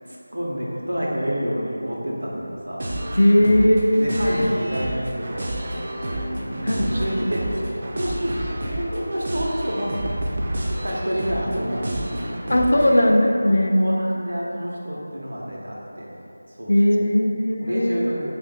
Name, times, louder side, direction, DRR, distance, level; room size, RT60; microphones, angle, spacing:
voice 1, 0.1-3.7 4.0-5.5 6.3-10.0 10.8-11.9 12.7-13.0 13.4-16.1 16.6-17.3 17.6-18.3, equal, 85° right, -4 dB, 0.8 m, -29 dB
sound 1, 2.8-13.1, right 1 dB, 40° right, 0.4 m, -29 dB
voice 2, 3.2-4.5 6.6-6.8 12.5-13.8 16.7-18.1, left 1 dB, 65° left, 2 dB, 0.3 m, -18 dB
2.8 x 2.4 x 3.9 m, 2.7 s
figure-of-eight pair, 175°, 0 cm